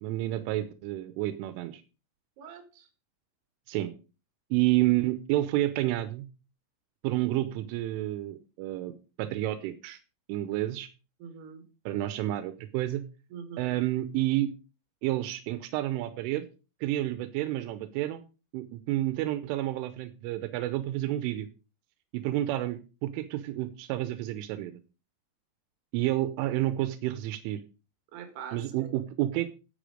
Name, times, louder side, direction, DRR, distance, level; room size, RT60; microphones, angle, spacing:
voice 1, 0.0-1.8 3.7-3.9 4.5-6.3 7.0-8.9 9.2-10.0 10.3-10.9 11.9-13.0 13.6-14.5 15.0-16.5 16.8-18.2 18.5-21.5 22.1-24.7 25.9-27.6 28.5-29.5, right 15 dB, 85° right, 12 dB, 3.2 m, -30 dB
voice 2, 2.4-2.9 11.2-11.6 13.3-13.7 28.1-28.9, right 7 dB, 60° right, 7 dB, 3.7 m, -44 dB
10.0 x 8.4 x 5.1 m, 0.32 s
omnidirectional pair, 5.6 m